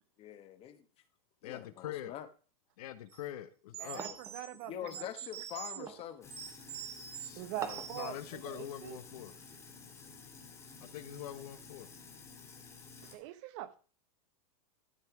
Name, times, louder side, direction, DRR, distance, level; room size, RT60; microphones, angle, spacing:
voice 1, 0.2-0.9 1.4-2.3 3.9-4.2 4.6-6.3 12.5-12.6, left 10 dB, 30° left, 1.2 m, -45 dB
voice 2, 1.4-2.1 2.8-4.0 7.2-9.3 10.8-11.9, left 12 dB, 70° left, 1.0 m, -44 dB
sound 1, 3.1-3.2 3.7-5.8 6.3-7.3 7.7-8.2, right 9 dB, 80° right, 3.5 m, -45 dB
voice 3, 3.8-4.7 5.0-5.1 5.8-5.9 7.4-9.0 13.0-13.8, right 14 dB, 50° right, 0.9 m, -43 dB
sound 2, 4.0-4.4 5.9-6.1 7.6-8.0, right 5 dB, 15° right, 0.8 m, -44 dB
Sink (filling or washing), 6.2-13.1, left 5 dB, 15° left, 2.0 m, -53 dB
12.5 x 5.6 x 4.8 m
supercardioid pair, 140°, 19 cm